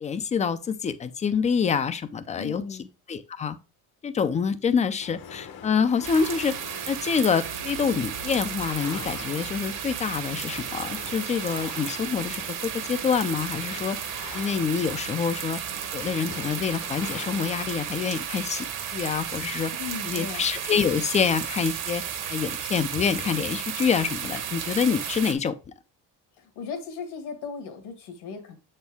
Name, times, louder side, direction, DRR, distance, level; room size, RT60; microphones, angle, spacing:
voice 1, 0.0-2.6 3.1-3.6 4.0-6.5 6.9-14.0 14.3-15.6 15.9-18.7 18.9-19.7 20.1-22.0 22.3-25.5, left 6 dB, 20° left, 0.3 m, -26 dB
voice 2, 2.4-2.9 19.8-20.5 26.4-28.5, left 5 dB, 75° left, 1.8 m, -37 dB
sound 1, 5.0-17.5, left 7 dB, 60° left, 1.0 m, -44 dB
sound 2, 6.0-25.3, right 8 dB, 50° right, 1.0 m, -34 dB
6.9 x 4.4 x 3.5 m
cardioid pair, 140°, 40 cm